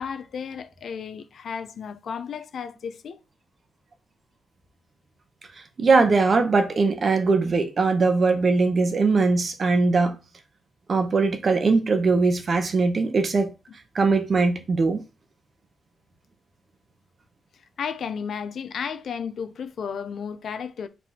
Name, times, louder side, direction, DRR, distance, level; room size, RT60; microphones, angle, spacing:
voice 1, 0.0-3.2 17.8-20.9, left 7 dB, 55° left, 0.4 m, -33 dB
voice 2, 5.8-10.2 10.9-13.5 13.9-15.0, right 4 dB, 35° right, 0.7 m, -21 dB
5.2 x 3.3 x 2.8 m
wide cardioid pair, 150°, 0 cm